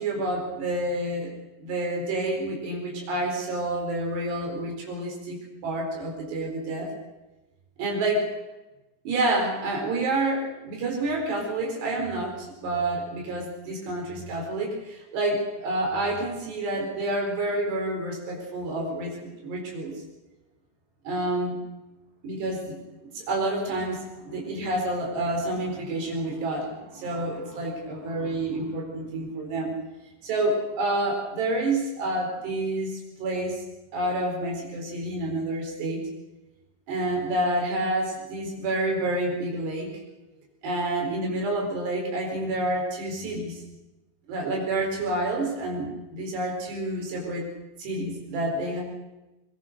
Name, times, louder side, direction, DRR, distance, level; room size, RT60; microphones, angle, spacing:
voice 1, 0.0-1.3 1.6-6.9 7.8-8.2 9.0-20.0 21.0-21.6 22.2-22.8 23.1-29.7 30.2-33.6 33.9-36.0 36.9-39.9 40.6-43.6 44.3-47.5 47.8-48.8, right 2 dB, 70° right, 0 dB, 6.5 m, -28 dB
22.5 x 21.5 x 6.7 m, 1.0 s
omnidirectional pair, 5.0 m